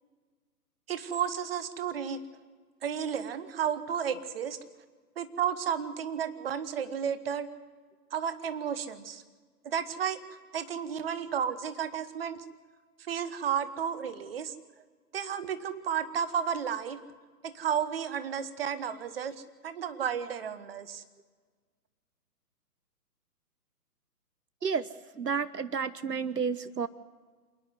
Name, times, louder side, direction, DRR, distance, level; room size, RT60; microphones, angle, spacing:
voice 1, 0.9-2.2 2.8-4.6 5.2-7.5 8.1-9.2 9.6-10.2 10.5-12.4 13.1-14.5 15.1-17.0 17.4-21.0, right 8 dB, 35° right, 12 dB, 1.3 m, -32 dB
voice 2, 25.1-26.9, right 6 dB, 80° right, 17 dB, 0.9 m, -31 dB
27.5 x 10.0 x 9.5 m, 1.5 s
figure-of-eight pair, 130°, 47 cm